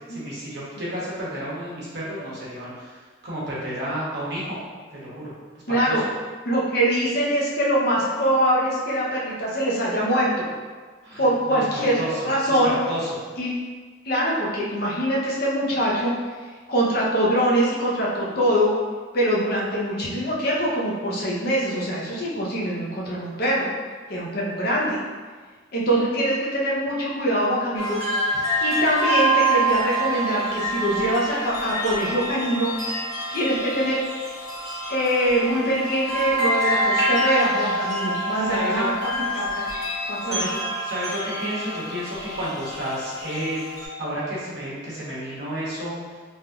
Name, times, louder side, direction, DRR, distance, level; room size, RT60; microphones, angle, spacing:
voice 1, 0.1-4.6 4.9-5.3 5.7-6.0 11.0-12.2 12.5-13.1 38.4-38.9 40.2-40.6 40.8-43.7 44.0-46.0, equal, 60° right, -7 dB, 1.0 m, -31 dB
voice 2, 5.7-6.0 6.5-10.5 11.2-12.0 12.2-12.8 13.4-13.6 14.0-16.1 16.7-18.7 19.1-23.7 24.1-25.0 25.7-28.0 28.6-32.7 33.3-34.0 34.9-39.6 40.1-40.5, equal, 55° left, -5 dB, 0.7 m, -23 dB
sound 1, 27.7-43.9, right 1 dB, 20° left, 1.2 m, -26 dB
3.3 x 2.7 x 2.3 m, 1.5 s
head